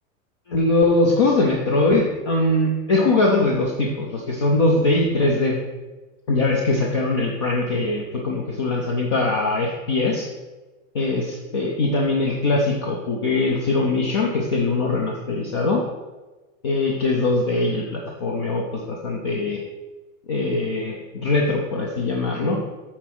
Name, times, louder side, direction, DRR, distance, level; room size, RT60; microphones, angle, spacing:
voice 1, 0.5-5.6 6.3-10.3 10.9-15.8 16.6-19.6 20.3-21.0 21.2-22.6, left 2 dB, 20° left, -1 dB, 0.3 m, -21 dB
8.4 x 4.0 x 6.0 m, 1.2 s
supercardioid pair, 165°, 42 cm